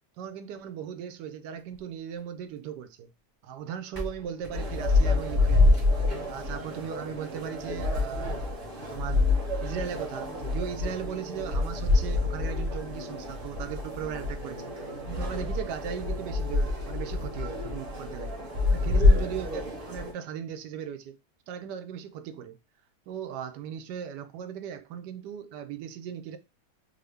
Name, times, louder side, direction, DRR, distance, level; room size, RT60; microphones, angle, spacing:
voice 1, 0.2-3.1 3.4-5.7 6.3-8.5 8.9-9.3 9.6-14.7 15.1-18.4 18.7-21.2 21.5-22.6 23.1-26.4, right 8 dB, 85° right, 1.2 m, -37 dB
sound 1, 1.6-2.8 3.6-3.7 3.9-6.2 7.6-7.7 8.1-8.2 8.5-8.6 9.2-9.3, equal, 20° right, 0.6 m, -45 dB
sound 2, 4.5-20.1, left 2 dB, 40° right, 1.0 m, -27 dB
3.7 x 2.1 x 3.3 m
omnidirectional pair, 1.8 m